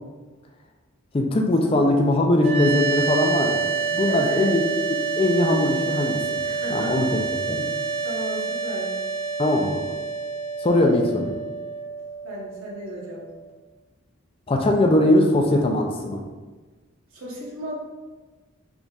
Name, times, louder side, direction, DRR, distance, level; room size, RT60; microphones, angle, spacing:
voice 1, 1.1-4.6 5.2-6.4 6.7-7.1 7.5-7.7 9.4-9.8 10.6-11.4 14.5-16.2, left 1 dB, 25° left, 2 dB, 0.3 m, -21 dB
sound 1, 2.4-13.5, right 5 dB, 30° right, 0.6 m, -28 dB
voice 2, 4.1-4.5 6.4-6.9 8.0-8.9 12.2-13.3 17.1-17.7, equal, 80° right, -4 dB, 1.0 m, -34 dB
4.0 x 3.6 x 2.4 m, 1.3 s
head